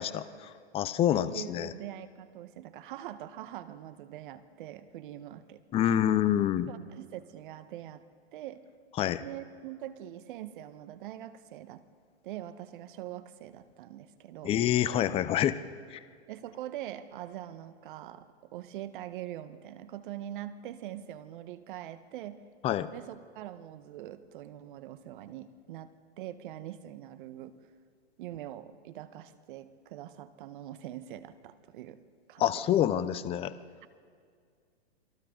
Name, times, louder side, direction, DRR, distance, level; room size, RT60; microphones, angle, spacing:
voice 1, 0.0-1.7 5.7-6.7 9.0-9.2 14.4-15.6 15.9-16.0 22.6-22.9 32.4-33.5, left 11 dB, 20° left, 14 dB, 0.6 m, -27 dB
voice 2, 1.1-5.8 6.7-8.0 8.3-8.7 9.2-11.8 12.2-14.5 16.3-22.4 22.9-27.7 28.2-32.0 32.3-32.6, right 12 dB, 50° right, 12 dB, 1.4 m, -43 dB
29.0 x 23.0 x 4.0 m, 2.1 s
hypercardioid pair, 125°, 32 cm